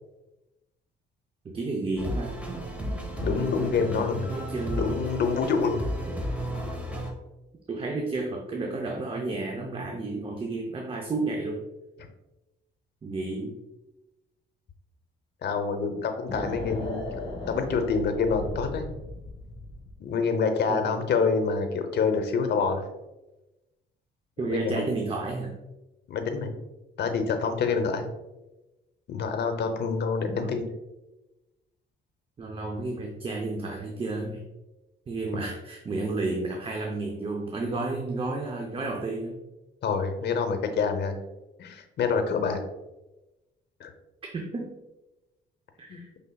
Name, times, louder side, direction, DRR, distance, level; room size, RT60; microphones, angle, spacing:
voice 1, 1.4-2.4 4.3-5.0 6.1-6.6 7.7-11.6 13.0-13.5 20.7-21.0 24.4-25.6 30.3-30.6 32.4-34.4 35.1-39.4 44.3-44.8 45.8-46.1, right 3 dB, 25° right, 2 dB, 0.5 m, -32 dB
sound 1, 2.0-7.1, equal, 5° right, 0.9 m, -33 dB
voice 2, 3.2-4.3 4.8-5.9 15.4-17.1 17.5-18.9 20.0-22.9 24.5-24.9 26.1-26.5 27.0-28.1 29.1-30.7 39.8-41.2 41.6-42.6 43.8-43.9 45.9-46.0, left 5 dB, 60° left, 6 dB, 0.7 m, -27 dB
sound 2, 16.3-20.0, left 2 dB, 25° left, 1.3 m, -36 dB
5.3 x 3.4 x 2.2 m, 1.0 s
cardioid pair, 90°, 20 cm